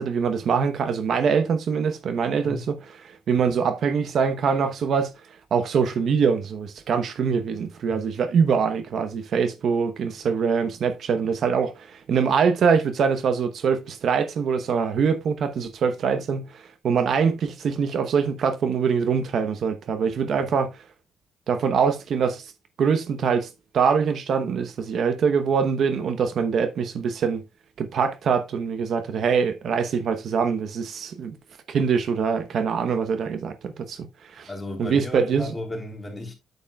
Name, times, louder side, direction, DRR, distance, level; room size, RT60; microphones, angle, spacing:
voice 1, 0.0-5.1 5.5-20.7 21.5-22.5 22.8-23.5 23.7-27.4 27.8-31.4 31.7-34.1 34.3-34.5 34.8-35.5, right 6 dB, 60° right, 0.9 m, -23 dB
voice 2, 34.4-36.3, left 2 dB, 20° left, 3.1 m, -34 dB
8.6 x 8.2 x 2.3 m
cardioid pair, 90°, 0 cm